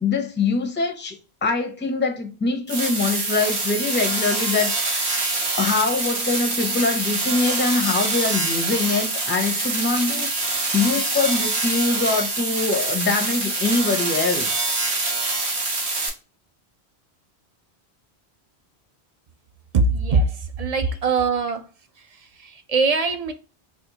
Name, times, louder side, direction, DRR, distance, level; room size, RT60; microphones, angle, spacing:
voice 1, 0.0-5.1 5.6-14.7, left 3 dB, 15° left, 0.5 m, -24 dB
sound 1, 2.7-16.1, right 3 dB, 80° right, 1.4 m, -25 dB
voice 2, 19.7-21.7 22.0-23.3, right 4 dB, 50° right, 0.5 m, -22 dB
4.2 x 2.4 x 2.7 m
omnidirectional pair, 1.1 m